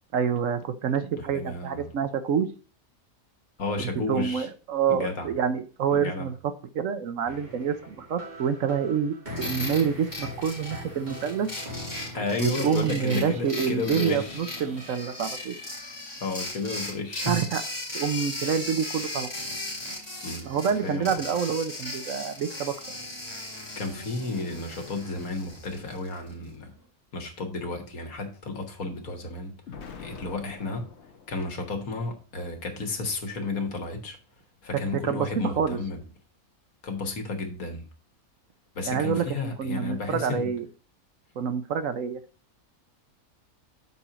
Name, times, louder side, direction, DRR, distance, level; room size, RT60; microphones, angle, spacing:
voice 1, 0.1-2.5 3.8-6.3 6.7-11.5 12.4-15.6 17.3-17.6 17.9-19.3 20.4-22.7 35.0-35.8 38.9-40.6 41.4-42.2, right 7 dB, 70° right, 1.0 m, -27 dB
voice 2, 1.2-1.9 3.6-4.5 4.9-5.3 5.9-6.3 12.1-14.4 16.2-17.5 20.2-20.5 20.8-21.2 23.7-26.7 27.1-30.9 31.3-34.2 34.6-36.0 36.8-37.9 38.7-40.5, left 3 dB, 70° left, 1.9 m, -32 dB
sound 1, 7.3-14.9, left 1 dB, 30° right, 1.7 m, -41 dB
sound 2, 9.4-26.3, left 1 dB, 15° left, 2.0 m, -37 dB
Explosion, 29.7-31.8, left 5 dB, 50° left, 1.2 m, -45 dB
7.0 x 4.4 x 5.0 m
omnidirectional pair, 1.5 m